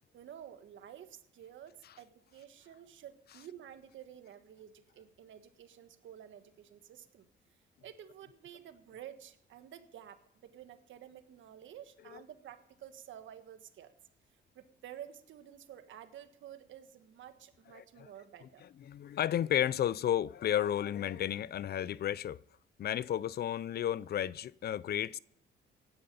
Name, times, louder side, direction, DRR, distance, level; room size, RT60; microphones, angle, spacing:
voice 1, 0.1-7.3 7.8-13.9 14.5-18.6, right 10 dB, 75° right, 1.5 m, -51 dB
voice 2, 18.9-22.4 22.8-25.2, left 10 dB, 55° left, 0.5 m, -32 dB
16.5 x 11.0 x 5.5 m
cardioid pair, 90°, 20 cm